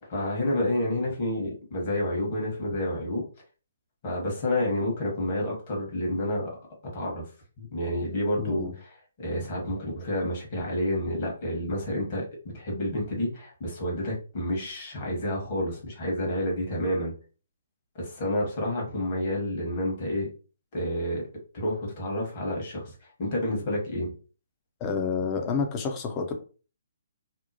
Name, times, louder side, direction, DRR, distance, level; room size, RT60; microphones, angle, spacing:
voice 1, 0.0-3.3 4.0-6.5 6.9-7.3 7.6-8.9 9.2-12.3 12.5-17.1 17.9-20.3 20.7-21.2 21.5-24.1, left 1 dB, 40° left, -1 dB, 1.1 m, -29 dB
voice 2, 8.4-8.7 24.8-26.3, left 5 dB, 25° left, 5 dB, 0.5 m, -29 dB
2.7 x 2.0 x 2.7 m, 0.37 s
figure-of-eight pair, 135°, 0 cm